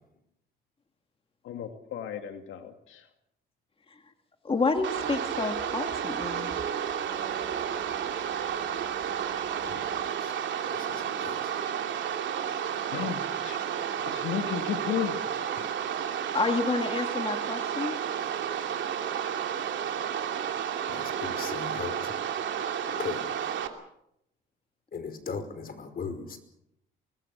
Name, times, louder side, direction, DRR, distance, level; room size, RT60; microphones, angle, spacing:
voice 1, 1.4-3.0 12.5-13.6 14.1-15.2, left 9 dB, 80° left, 6 dB, 2.3 m, -34 dB
voice 2, 4.4-6.5 16.3-18.0, left 3 dB, 30° left, 5 dB, 2.1 m, -29 dB
sound 1, 4.7-10.1, right 6 dB, 35° right, 3.5 m, -43 dB
sound 2, 4.8-23.7, right 8 dB, 70° right, 2.8 m, -32 dB
voice 3, 10.7-11.5 15.6-15.7 20.9-22.2 22.9-23.6 24.9-26.4, left 5 dB, 50° left, 9 dB, 5.1 m, -38 dB
25.0 x 20.5 x 6.9 m, 0.79 s
cardioid pair, 90°, 20 cm